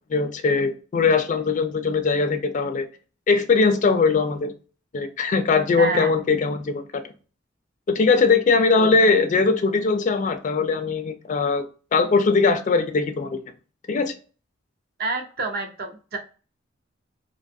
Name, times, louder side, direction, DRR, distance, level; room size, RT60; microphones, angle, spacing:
voice 1, 0.1-2.9 3.3-4.5 4.9-6.9 7.9-11.6 11.9-13.4 13.9-14.1, left 4 dB, 40° left, 8 dB, 0.3 m, -20 dB
voice 2, 5.8-6.2 8.8-9.2 15.0-16.2, right 2 dB, 50° right, 4 dB, 0.6 m, -29 dB
2.6 x 2.3 x 2.6 m, 0.37 s
head